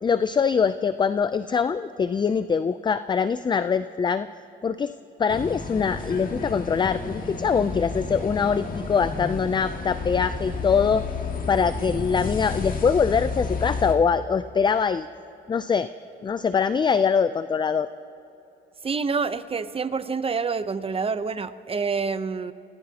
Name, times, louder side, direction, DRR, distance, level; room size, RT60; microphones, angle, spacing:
voice 1, 0.0-4.3 4.6-4.9 5.2-11.1 11.5-15.1 15.5-15.9 16.2-17.9, left 6 dB, 25° left, 13 dB, 0.4 m, -23 dB
sound 1, 5.3-13.9, left 4 dB, 45° left, 1.8 m, -31 dB
voice 2, 18.8-22.5, right 5 dB, 30° right, 12 dB, 0.7 m, -27 dB
28.5 x 18.0 x 2.9 m, 3.0 s
cardioid pair, 90°, 20 cm